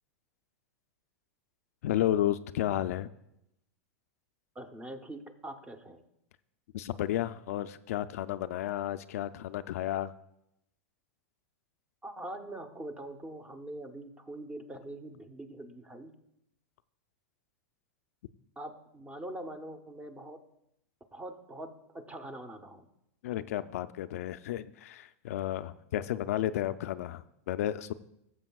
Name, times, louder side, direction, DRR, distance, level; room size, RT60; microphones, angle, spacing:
voice 1, 1.8-3.1 6.7-10.1 23.2-27.9, left 12 dB, 70° left, 12 dB, 0.4 m, -32 dB
voice 2, 4.5-6.0 12.0-16.1 18.6-20.4 21.1-22.9, right 1 dB, 15° right, 9 dB, 0.8 m, -43 dB
16.5 x 7.2 x 2.3 m, 0.80 s
hypercardioid pair, 125°, 8 cm